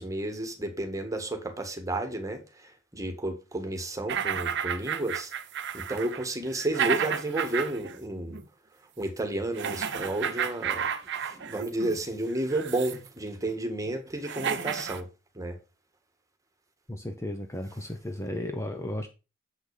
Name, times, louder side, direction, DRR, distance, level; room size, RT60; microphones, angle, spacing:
voice 1, 0.0-5.3 5.7-8.4 9.0-10.9 11.2-15.1 15.4-15.6, right 1 dB, 15° right, 1.8 m, -32 dB
sound 1, 4.1-8.0 8.3-8.5 9.6-12.0 12.5-13.1 13.9-14.0 14.2-15.0, right 8 dB, 60° right, 0.9 m, -32 dB
voice 2, 16.9-19.1, left 1 dB, 15° left, 0.9 m, -34 dB
7.7 x 6.2 x 5.0 m
head